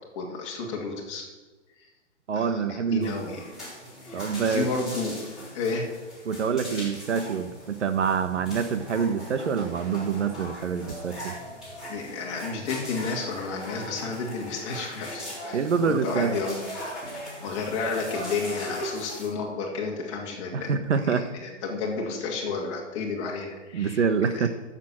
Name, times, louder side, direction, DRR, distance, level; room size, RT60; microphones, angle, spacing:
voice 1, 0.1-1.2 1.8-1.9 2.3-3.4 4.0-5.9 11.9-16.7 17.4-20.7 21.0-24.5, left 4 dB, 25° left, -1 dB, 2.4 m, -32 dB
voice 2, 2.3-3.4 4.1-4.7 6.3-11.4 15.5-16.4 20.5-21.3 23.7-24.5, right 6 dB, 70° right, 10 dB, 1.1 m, -26 dB
sound 1, 3.0-19.3, equal, ahead, 3.6 m, -40 dB
sound 2, 3.1-14.9, left 1 dB, 35° right, 2.5 m, -49 dB
10.5 x 7.4 x 8.6 m, 1.3 s
hypercardioid pair, 165°, 37 cm